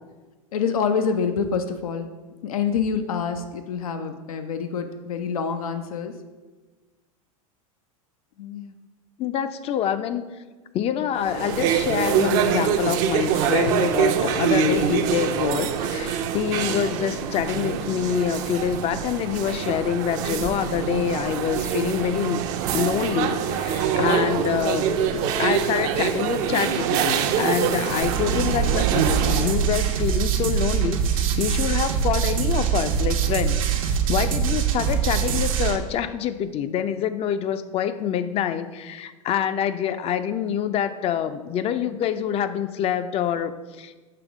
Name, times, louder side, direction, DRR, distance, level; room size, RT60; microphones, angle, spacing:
voice 1, 0.5-2.1 2.4-6.1 8.4-8.7, left 6 dB, 85° left, 8 dB, 0.6 m, -26 dB
voice 2, 9.2-10.2 10.7-22.5 22.7-44.0, left 9 dB, 35° left, 11 dB, 0.5 m, -26 dB
sound 1, 11.2-29.6, right 7 dB, 55° right, 0.6 m, -24 dB
sound 2, 28.0-35.8, right 8 dB, 75° right, 0.9 m, -23 dB
6.8 x 3.5 x 6.0 m, 1.3 s
hypercardioid pair, 105°, 18 cm